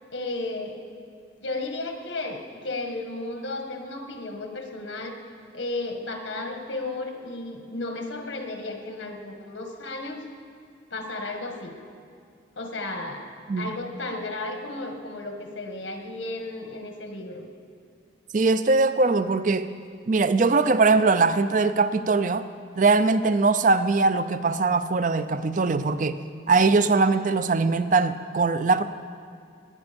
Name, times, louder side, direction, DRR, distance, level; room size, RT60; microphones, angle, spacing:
voice 1, 0.1-0.8 1.4-5.2 5.5-10.2 10.9-11.7 12.5-13.3 13.6-17.5, left 2 dB, 80° left, 4 dB, 1.6 m, -34 dB
voice 2, 18.3-19.7 20.1-22.5 22.8-26.2 26.5-28.8, right 3 dB, 40° right, 12 dB, 0.4 m, -21 dB
18.5 x 10.5 x 5.3 m, 2.2 s
head